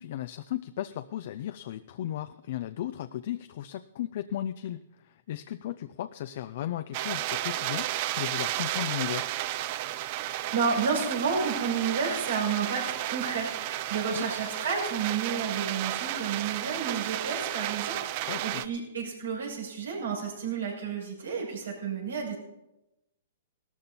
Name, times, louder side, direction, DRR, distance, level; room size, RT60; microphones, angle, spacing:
voice 1, 0.0-7.9 8.2-9.3 14.1-14.3 18.3-18.6, left 12 dB, 55° left, 11 dB, 0.5 m, -35 dB
sound 1, 6.9-18.7, right 14 dB, 45° right, 0.6 m, -33 dB
voice 2, 10.0-22.4, right 5 dB, 90° right, -1 dB, 6.2 m, -31 dB
16.5 x 13.5 x 4.3 m, 0.93 s
hypercardioid pair, 140°, 0 cm